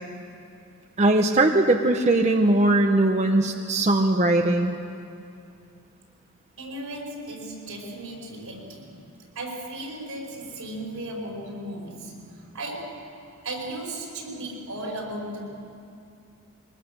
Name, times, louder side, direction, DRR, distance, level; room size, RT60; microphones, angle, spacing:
voice 1, 1.0-4.7, right 2 dB, 30° right, 4 dB, 0.8 m, -20 dB
voice 2, 6.6-9.0 9.4-13.1 13.4-15.5, right 1 dB, 90° right, -1 dB, 5.2 m, -36 dB
23.0 x 19.5 x 6.7 m, 2.6 s
head